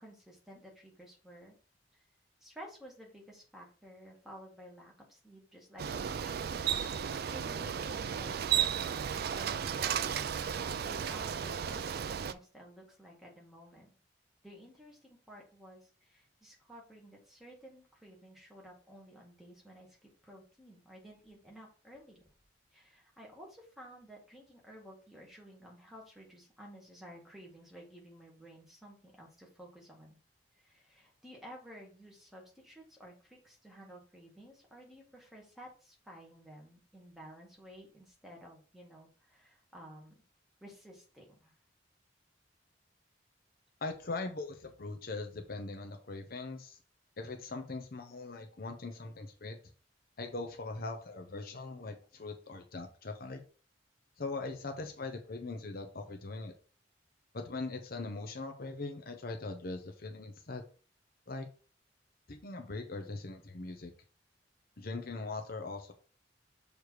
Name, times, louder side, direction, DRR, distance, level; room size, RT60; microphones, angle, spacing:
voice 1, 0.0-1.6 1.9-2.0 2.4-6.6 7.3-10.2 10.5-13.9 14.4-22.2 22.7-30.2 30.5-40.2 40.6-41.6, equal, ahead, -2 dB, 1.9 m, -53 dB
Bicycle, 5.8-12.3, right 8 dB, 55° right, 0.4 m, -34 dB
voice 2, 43.8-46.8 47.2-49.6 50.2-53.4 54.2-56.5 57.3-60.6 61.3-61.5 62.3-63.9 64.8-65.9, left 3 dB, 55° left, 5 dB, 0.8 m, -41 dB
6.6 x 3.4 x 4.6 m, 0.38 s
head